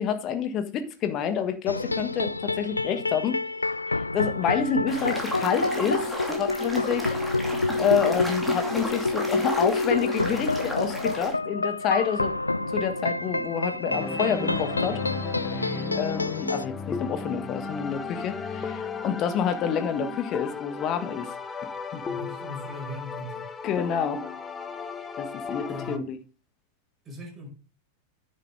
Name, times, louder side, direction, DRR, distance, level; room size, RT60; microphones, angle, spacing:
voice 1, 0.0-3.4 3.9-12.3 12.7-15.0 15.5-21.3 21.9-22.0 23.6-24.2 25.2-26.2, left 7 dB, 35° left, 1.4 m, -28 dB
sound 1, 1.7-16.7, left 2 dB, 80° left, 0.3 m, -28 dB
sound 2, 4.9-11.3, left 1 dB, ahead, 2.6 m, -34 dB
sound 3, 13.9-26.0, left 4 dB, 20° left, 0.9 m, -35 dB
voice 2, 22.0-23.4 25.7-26.0 27.0-27.5, equal, 20° right, 5.1 m, -39 dB
10.0 x 6.8 x 3.6 m
figure-of-eight pair, 90°, 0 cm